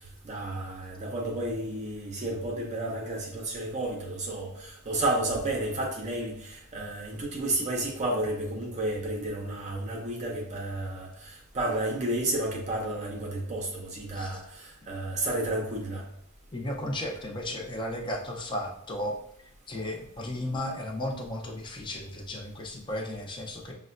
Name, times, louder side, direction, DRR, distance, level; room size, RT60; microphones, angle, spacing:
voice 1, 0.2-16.0, right 1 dB, 30° right, -1 dB, 0.6 m, -31 dB
voice 2, 16.5-19.2 19.7-23.7, left 1 dB, 20° left, 0 dB, 0.5 m, -34 dB
6.3 x 2.1 x 2.5 m, 0.73 s
head